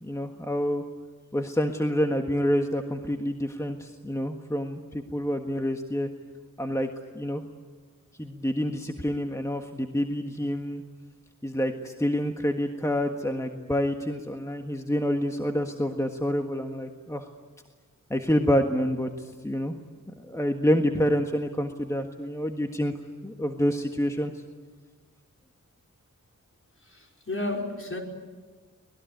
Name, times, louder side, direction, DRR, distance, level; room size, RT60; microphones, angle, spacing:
voice 1, 0.0-0.8 1.3-6.1 6.6-6.9 7.1-7.4 8.2-10.8 11.4-17.3 18.1-19.8 20.2-22.9 23.2-24.3, equal, 10° left, 4 dB, 1.6 m, -27 dB
voice 2, 26.9-28.0, left 2 dB, 40° left, 1 dB, 5.1 m, -32 dB
24.5 x 20.5 x 9.4 m, 1.4 s
wide cardioid pair, 75°, 32 cm